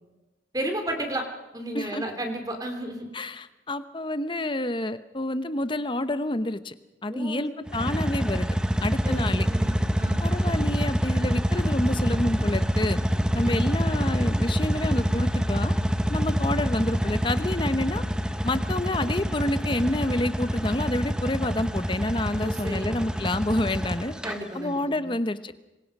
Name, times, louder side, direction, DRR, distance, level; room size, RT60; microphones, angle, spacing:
voice 1, 0.5-1.3 1.5-3.1 7.1-7.5 9.0-10.2 13.4-13.7 22.4-23.0 24.2-25.1, right 1 dB, 20° right, 4 dB, 2.9 m, -33 dB
voice 2, 3.1-6.7 7.0-8.5 8.8-9.5 10.2-13.0 13.3-15.7 16.1-18.0 18.4-24.1 24.5-25.5, left 1 dB, 25° left, 11 dB, 0.9 m, -28 dB
sound 1, 7.7-24.4, equal, 5° right, 1.1 m, -26 dB
26.5 x 23.0 x 5.4 m, 1.1 s
head